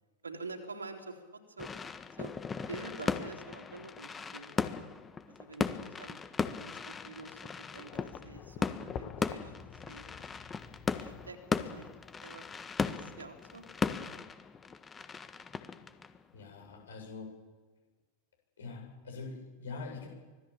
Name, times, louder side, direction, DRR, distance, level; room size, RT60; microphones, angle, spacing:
voice 1, 0.2-1.2 1.6-1.7 2.2-2.4 2.7-4.7 5.3-6.2 6.6-8.7 9.0-10.1 10.9-11.9 12.2-12.4 12.9-13.6, right 3 dB, 75° right, 4 dB, 3.5 m, -47 dB
sound 1, 1.6-16.9, left 5 dB, 15° left, 1.4 m, -37 dB
sound 2, 7.7-14.1, left 8 dB, 30° left, 1.8 m, -49 dB
voice 2, 16.3-17.3 18.6-20.1, left 4 dB, 65° left, 3 dB, 7.8 m, -43 dB
25.0 x 19.0 x 7.3 m, 1.3 s
figure-of-eight pair, 90°, 0 cm